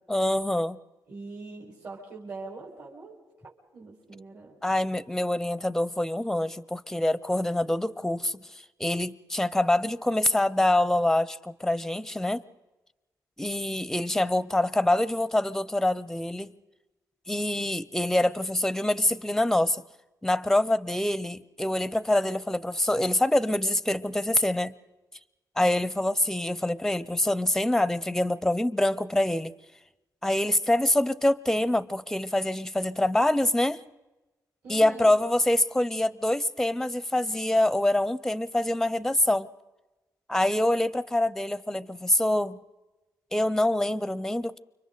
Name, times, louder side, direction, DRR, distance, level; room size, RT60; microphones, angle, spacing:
voice 1, 0.1-0.8 4.6-12.4 13.4-16.5 17.3-19.8 20.2-24.7 25.6-29.5 30.2-33.8 34.7-39.5 40.3-42.6 43.3-44.6, left 1 dB, 5° left, 0.6 m, -25 dB
voice 2, 1.1-3.2 3.4-4.6 34.6-35.1, right 3 dB, 50° right, 4.8 m, -42 dB
30.0 x 25.0 x 4.0 m
cardioid pair, 120°, 7 cm